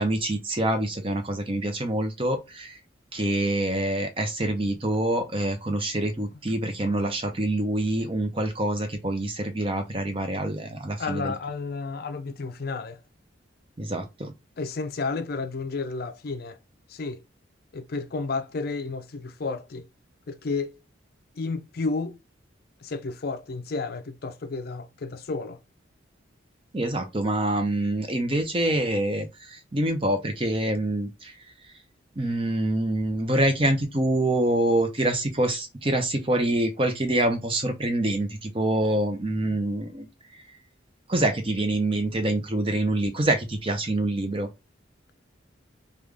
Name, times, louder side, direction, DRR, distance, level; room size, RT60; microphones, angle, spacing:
voice 1, 0.0-2.8 3.1-11.3 13.8-14.3 26.7-31.3 32.2-40.1 41.1-44.5, right 1 dB, 30° right, 0.7 m, -26 dB
voice 2, 11.0-13.0 14.6-16.6 16.9-17.2 17.7-19.9 20.3-20.8 21.4-22.2 22.8-25.6, left 4 dB, 50° left, 0.4 m, -31 dB
3.7 x 2.3 x 3.3 m
head